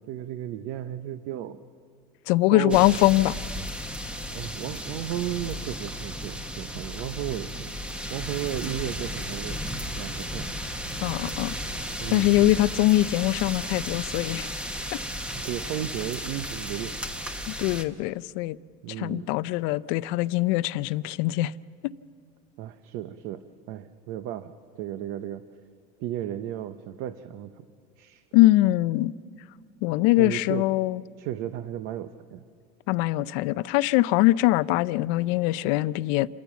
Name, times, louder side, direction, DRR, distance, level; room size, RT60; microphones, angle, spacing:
voice 1, 0.1-1.6 2.5-2.8 4.3-7.7 8.1-9.6 10.0-10.5 12.0-12.6 15.3-17.0 18.8-19.3 22.6-23.4 23.7-25.4 26.0-27.5 28.0-28.2 30.2-30.7 31.2-32.4, right 12 dB, 65° right, 0.7 m, -34 dB
voice 2, 2.3-3.4 11.0-11.5 12.1-14.5 17.5-18.6 19.0-21.5 21.8-21.9 28.3-29.1 29.8-31.0 32.9-36.3, left 17 dB, 75° left, 0.5 m, -22 dB
sound 1, 2.7-17.8, equal, 5° right, 1.0 m, -34 dB
27.5 x 13.5 x 7.1 m
cardioid pair, 150°, 18 cm